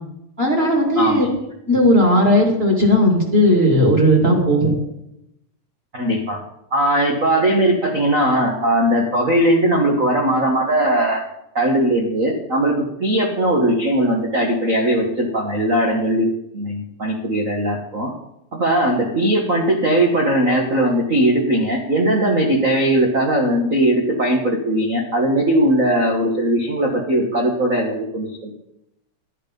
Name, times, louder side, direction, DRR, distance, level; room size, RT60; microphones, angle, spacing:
voice 1, 0.4-1.3 1.7-4.7, equal, 20° right, 0 dB, 2.2 m, -16 dB
voice 2, 1.0-1.3 5.9-6.4 6.7-11.3 11.5-16.3 16.5-18.1 18.5-28.5, right 1 dB, 85° right, 1 dB, 0.7 m, -19 dB
12.5 x 9.8 x 5.3 m, 0.82 s
omnidirectional pair, 3.8 m